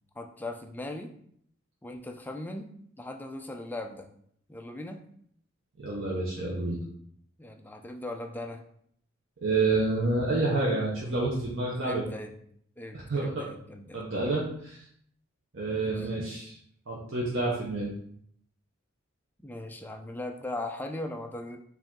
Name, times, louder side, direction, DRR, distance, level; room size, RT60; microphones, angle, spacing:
voice 1, 0.2-1.1 1.8-4.1 4.5-5.0 7.4-8.6 11.8-12.4 12.8-14.0 15.7-16.1 19.4-21.6, left 2 dB, 10° left, 4 dB, 0.4 m, -39 dB
voice 2, 5.8-6.8 9.4-12.0 13.1-13.4 13.9-14.8 15.5-16.5 16.9-17.9, right 2 dB, 65° right, -5 dB, 0.9 m, -28 dB
4.9 x 2.7 x 3.7 m, 0.66 s
head